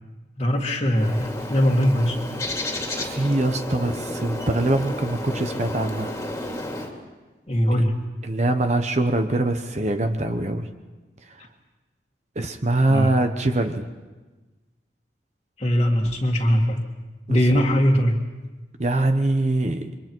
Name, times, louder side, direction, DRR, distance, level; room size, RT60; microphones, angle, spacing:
voice 1, 0.4-2.2 7.5-8.0 12.9-13.1 15.6-16.8 17.3-18.1, equal, 35° left, -4 dB, 1.9 m, -20 dB
Bird, 0.9-6.9, left 1 dB, 15° left, 2.6 m, -32 dB
voice 2, 3.0-6.1 7.8-7.9 8.2-10.7 11.3-11.4 12.4-13.9 17.3-17.4 18.8-20.0, right 2 dB, 40° right, 7 dB, 1.0 m, -23 dB
28.5 x 24.0 x 4.6 m, 1.2 s
head